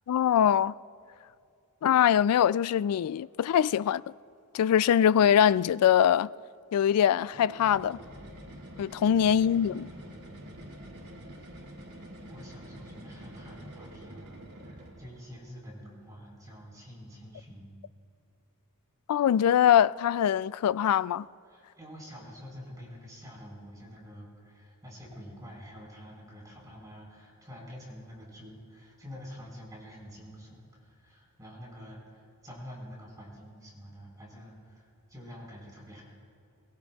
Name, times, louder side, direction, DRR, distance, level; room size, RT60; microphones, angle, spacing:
voice 1, 0.1-0.8 1.8-4.0 4.5-6.3 6.7-8.0 8.8-9.9 19.1-21.3, left 9 dB, 80° left, 0.3 m, -23 dB
sound 1, 7.2-15.3, right 1 dB, 85° right, 2.8 m, -46 dB
voice 2, 9.2-10.3 12.2-17.7 21.4-36.0, equal, 15° right, 4.8 m, -47 dB
22.5 x 22.0 x 2.4 m
head